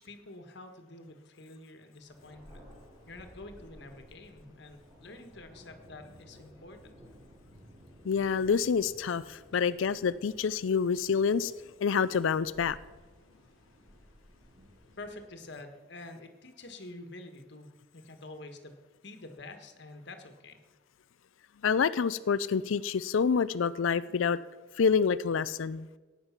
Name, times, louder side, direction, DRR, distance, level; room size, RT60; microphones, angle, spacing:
voice 1, 0.0-2.6 3.1-6.9 15.0-20.6, left 2 dB, 55° left, 6 dB, 1.6 m, -48 dB
Thunder, 2.0-15.6, equal, 20° right, 4.4 m, -56 dB
voice 2, 8.0-11.5 11.8-12.8 21.6-24.4 24.8-25.9, left 6 dB, 70° left, 17 dB, 0.4 m, -27 dB
16.0 x 9.6 x 5.9 m, 1.3 s
head